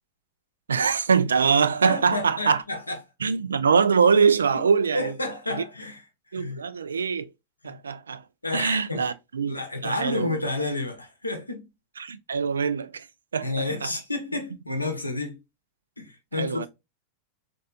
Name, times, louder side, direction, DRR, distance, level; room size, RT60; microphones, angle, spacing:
voice 1, 0.7-2.6 3.2-5.1 6.3-7.3 7.6-8.2 8.5-10.4 12.0-13.1 13.3-13.9 16.3-16.7, right 5 dB, 70° right, 0.3 m, -23 dB
voice 2, 1.9-3.0 4.5-4.6 4.9-6.1 6.3-6.6 7.6-7.8 8.4-9.1 9.5-11.7 13.4-15.4 16.0-16.7, left 2 dB, 85° left, 0.9 m, -30 dB
4.2 x 2.5 x 2.3 m
figure-of-eight pair, 90°, 0 cm